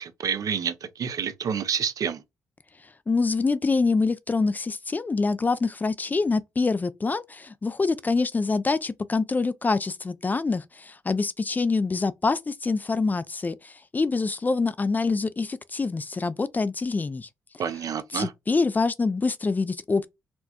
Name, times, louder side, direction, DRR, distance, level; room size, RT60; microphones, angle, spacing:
voice 1, 0.0-2.2 17.6-18.3, right 7 dB, 60° right, 0.5 m, -29 dB
voice 2, 3.1-17.3 18.1-20.1, left 4 dB, 25° left, 0.3 m, -25 dB
4.3 x 2.1 x 2.8 m
cardioid pair, 70°, 7 cm